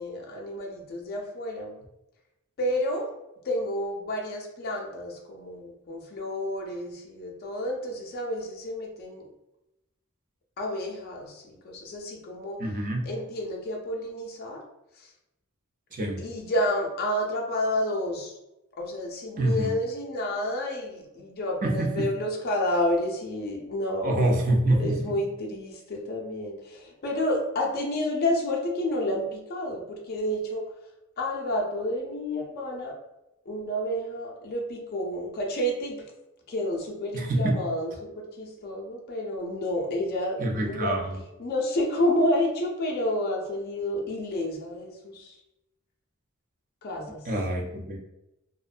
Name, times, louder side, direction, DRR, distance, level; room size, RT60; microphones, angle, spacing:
voice 1, 0.0-1.8 2.6-3.1 3.4-9.3 10.6-12.6 13.0-14.6 15.0-15.1 16.2-18.3 18.8-24.3 24.7-30.6 31.2-32.9 33.5-36.0 36.5-40.9 41.4-45.4 46.8-47.2, left 1 dB, 45° left, -1 dB, 0.5 m, -30 dB
voice 2, 12.6-13.1 15.9-16.2 19.4-19.7 21.6-22.1 24.0-25.0 37.1-37.6 40.4-41.2 47.3-48.0, right 1 dB, 40° right, 1 dB, 0.4 m, -26 dB
2.4 x 2.1 x 2.4 m, 0.90 s
head